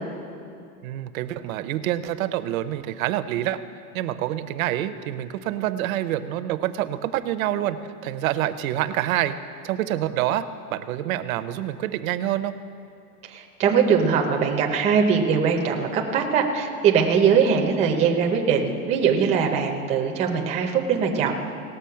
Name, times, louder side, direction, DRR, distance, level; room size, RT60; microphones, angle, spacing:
voice 1, 0.8-3.6 3.9-7.8 8.0-9.4 9.6-12.5, right 13 dB, 60° right, 11 dB, 0.7 m, -27 dB
voice 2, 13.2-21.3, right 6 dB, 15° right, 1 dB, 0.6 m, -21 dB
18.5 x 6.8 x 5.7 m, 2.5 s
supercardioid pair, 170°, 47 cm